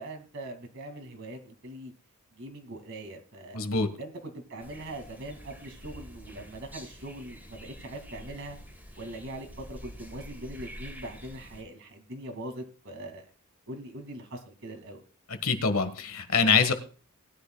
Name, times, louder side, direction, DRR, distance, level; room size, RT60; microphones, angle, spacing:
voice 1, 0.0-1.9 2.4-3.6 4.0-8.6 9.0-13.2 13.7-15.0, right 1 dB, 60° right, 4 dB, 2.3 m, -41 dB
voice 2, 3.5-3.9 15.3-16.7, left 5 dB, 70° left, 10 dB, 1.5 m, -25 dB
sound 1, 4.6-11.6, equal, 5° right, 3.1 m, -47 dB
19.0 x 10.5 x 2.3 m, 0.37 s
head